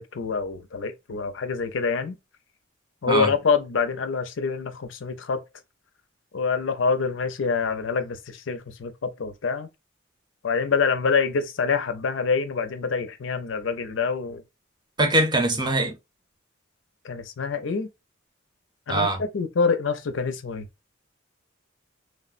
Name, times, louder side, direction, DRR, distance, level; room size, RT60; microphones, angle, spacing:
voice 1, 0.0-2.2 3.0-5.4 6.3-9.7 10.4-14.4 17.0-17.9 18.9-19.1 19.3-20.6, left 5 dB, 70° left, 0.5 m, -26 dB
voice 2, 15.0-16.0 18.9-19.2, right 1 dB, 20° right, 0.6 m, -22 dB
3.2 x 2.1 x 2.4 m
head